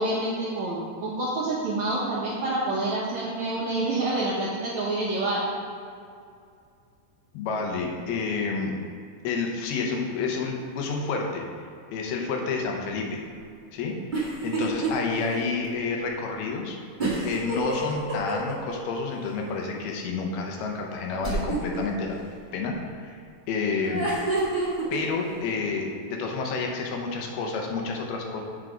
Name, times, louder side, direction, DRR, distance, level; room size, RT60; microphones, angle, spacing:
voice 1, 0.0-5.4, right 2 dB, 75° right, -5 dB, 1.7 m, -27 dB
voice 2, 7.3-8.7 9.2-11.4 11.9-13.2 13.7-16.8 17.2-22.2 22.5-23.2 23.5-24.1 24.9-28.4, left 4 dB, 80° left, 1 dB, 2.9 m, -29 dB
sound 1, 14.1-14.9 15.3-15.4 17.0-18.7 21.2-21.8 23.8-25.0, right 3 dB, 35° right, 0.7 m, -28 dB
7.8 x 6.4 x 5.0 m, 2.3 s
omnidirectional pair, 4.5 m